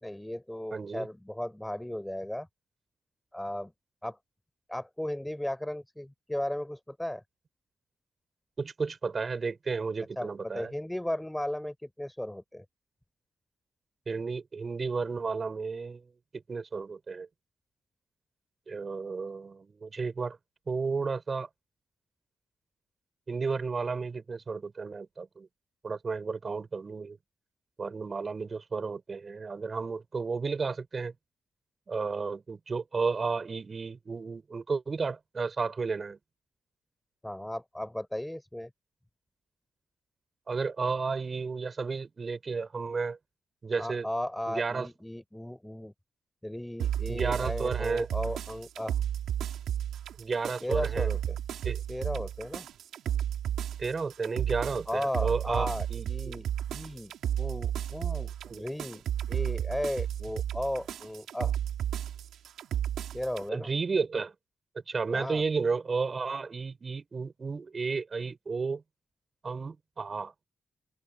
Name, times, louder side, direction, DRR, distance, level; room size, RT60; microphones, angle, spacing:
voice 1, 0.0-2.5 3.3-3.7 4.0-4.2 4.7-7.2 10.2-12.6 37.2-38.7 43.8-45.9 46.4-49.0 50.6-51.4 51.9-52.6 54.9-61.5 63.1-63.7 65.1-65.4, left 1 dB, 5° left, 4.4 m, -36 dB
voice 2, 0.7-1.1 8.6-10.7 14.1-16.1 16.5-17.3 18.7-20.4 20.7-21.5 23.3-25.5 25.8-27.2 27.8-31.1 31.9-36.2 40.5-43.2 43.6-44.1 44.5-44.9 47.1-48.1 50.2-51.1 51.6-51.8 53.8-56.3 58.5-58.6 63.5-64.3 64.9-68.8 69.4-70.3, right 4 dB, 45° right, 5.7 m, -32 dB
sound 1, 46.8-63.5, right 10 dB, 85° right, 4.2 m, -33 dB
open air
cardioid pair, 65°, 0 cm